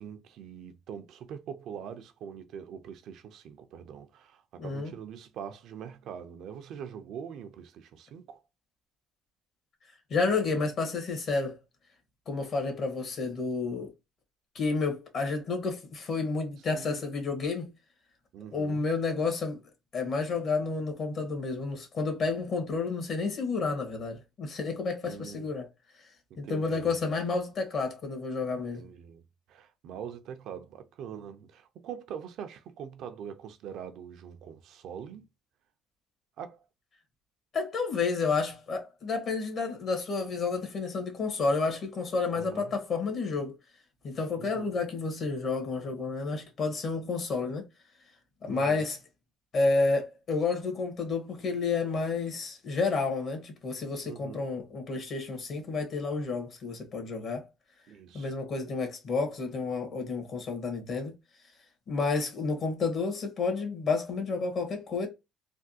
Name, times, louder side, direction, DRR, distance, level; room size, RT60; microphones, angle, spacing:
voice 1, 0.0-8.4 16.7-17.0 18.3-18.8 25.0-25.5 26.3-26.9 28.7-29.2 29.5-35.3 36.4-36.6 42.3-42.7 44.4-44.8 48.4-48.9 54.0-54.5 57.9-58.3, right 8 dB, 75° right, 0.5 m, -43 dB
voice 2, 4.6-4.9 10.1-11.6 12.3-13.9 14.5-17.7 18.5-19.6 19.9-25.7 26.4-28.9 37.5-43.6 44.0-47.6 48.4-49.0 49.5-57.4 58.1-61.1 61.9-65.1, left 4 dB, 55° left, 1.3 m, -30 dB
3.4 x 2.3 x 2.7 m
cardioid pair, 90°, 0 cm